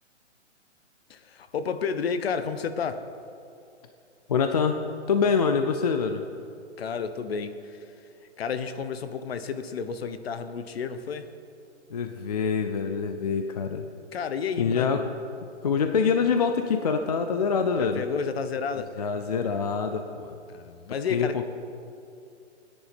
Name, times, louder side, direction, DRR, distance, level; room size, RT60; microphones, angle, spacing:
voice 1, 1.1-3.0 6.8-7.8 8.4-11.3 14.1-15.0 17.8-19.0 20.5-21.4, left 6 dB, 55° left, 11 dB, 1.0 m, -31 dB
voice 2, 4.3-4.8 5.1-6.2 11.9-13.9 14.6-15.1 15.6-18.1 19.0-20.4 21.1-21.5, left 5 dB, 35° left, 6 dB, 0.5 m, -25 dB
17.5 x 10.0 x 5.2 m, 2.6 s
hypercardioid pair, 165°, 36 cm